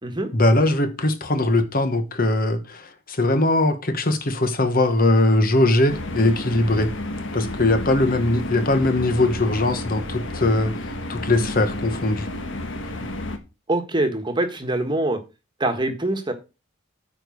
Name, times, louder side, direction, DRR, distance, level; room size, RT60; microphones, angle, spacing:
voice 1, 0.3-6.9 7.3-12.3, left 2 dB, 45° left, 1.3 m, -20 dB
sound 1, 5.9-13.4, left 1 dB, 65° left, 1.6 m, -31 dB
voice 2, 13.7-15.2 15.6-16.3, right 2 dB, 25° right, 1.5 m, -24 dB
9.0 x 5.0 x 6.4 m
head